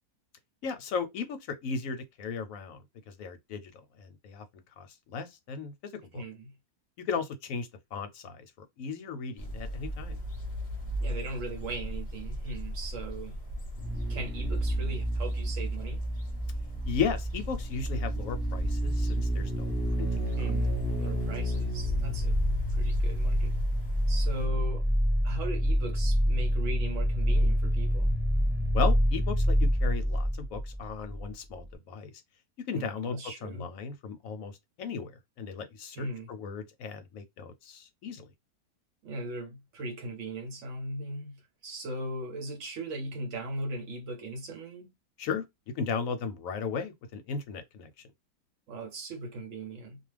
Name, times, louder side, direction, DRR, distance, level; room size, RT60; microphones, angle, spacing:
voice 1, 0.6-2.8 3.2-3.7 4.0-4.4 4.8-5.7 6.1-6.2 7.1-8.5 8.8-10.2 16.9-19.7 20.0-20.3 28.7-32.1 32.7-34.5 34.8-38.3 45.2-45.4 45.8-47.9, left 5 dB, 70° left, 0.9 m, -35 dB
voice 2, 6.1-6.5 11.0-13.4 14.1-16.1 20.4-22.4 22.7-23.6 24.1-24.9 25.2-28.2 32.7-33.7 35.9-36.3 39.0-44.9 48.7-50.0, right 1 dB, 60° right, 1.1 m, -39 dB
sound 1, 9.4-24.5, left 2 dB, 40° left, 0.7 m, -38 dB
sound 2, 13.8-31.3 31.6-31.7, equal, 15° right, 0.4 m, -28 dB
2.4 x 2.3 x 3.2 m
omnidirectional pair, 1.6 m